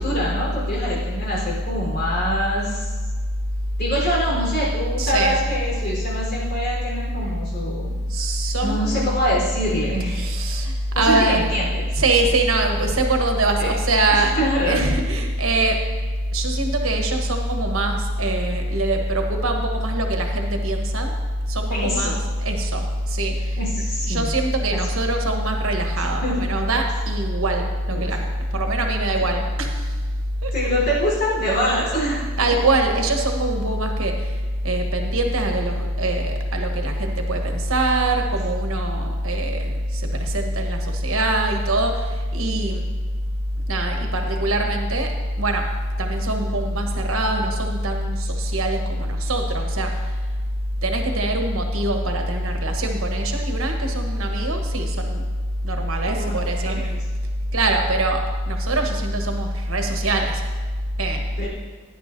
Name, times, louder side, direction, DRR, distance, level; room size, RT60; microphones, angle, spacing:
voice 1, 0.0-2.9 3.8-7.9 8.6-10.2 10.9-12.0 13.6-13.7 14.3-14.9 21.7-22.2 23.6-24.3 26.2-26.4 27.9-28.0 30.5-32.3 56.0-56.9 61.4-61.5, equal, 50° left, -4 dB, 4.0 m, -25 dB
voice 2, 5.0-5.4 7.9-9.1 10.1-11.6 11.9-14.4 14.6-15.8 16.3-21.1 21.5-23.6 24.1-30.0 30.4-30.7 32.4-42.9 43.7-45.1 45.4-45.7 46.0-50.2 50.8-55.2 55.6-57.0 57.5-60.4 61.0-61.3, right 1 dB, 90° right, 3 dB, 1.2 m, -23 dB
17.0 x 10.0 x 2.7 m, 1.4 s
head